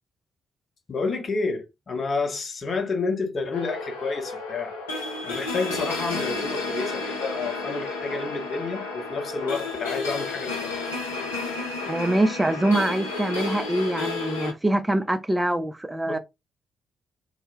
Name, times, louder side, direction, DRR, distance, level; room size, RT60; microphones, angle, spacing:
voice 1, 0.9-4.8 5.2-10.7 16.1-16.2, left 4 dB, 40° left, 0.8 m, -29 dB
sound 1, 3.5-14.5, left 3 dB, 80° left, 0.5 m, -32 dB
voice 2, 11.9-16.2, right 1 dB, 15° right, 0.3 m, -24 dB
2.1 x 2.0 x 3.1 m
figure-of-eight pair, 40°, 0 cm